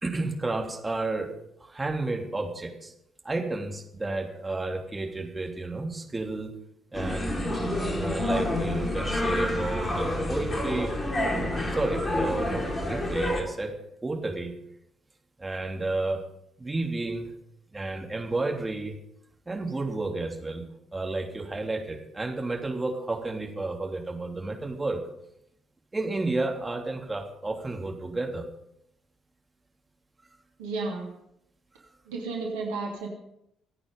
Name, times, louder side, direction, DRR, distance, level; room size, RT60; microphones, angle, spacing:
voice 1, 0.0-1.3 1.6-2.9 3.2-6.5 6.9-7.5 8.0-10.9 11.7-13.7 14.0-14.5 15.4-16.2 16.6-17.3 17.7-18.9 19.5-20.6 20.9-25.0 25.9-28.5, right 2 dB, 20° right, 2 dB, 3.3 m, -31 dB
sound 1, 6.9-13.4, left 1 dB, 30° left, 3.6 m, -28 dB
voice 2, 30.6-31.1 32.1-33.1, right 3 dB, 70° right, -1 dB, 3.0 m, -32 dB
26.0 x 8.9 x 5.4 m, 0.78 s
figure-of-eight pair, 45°, 0 cm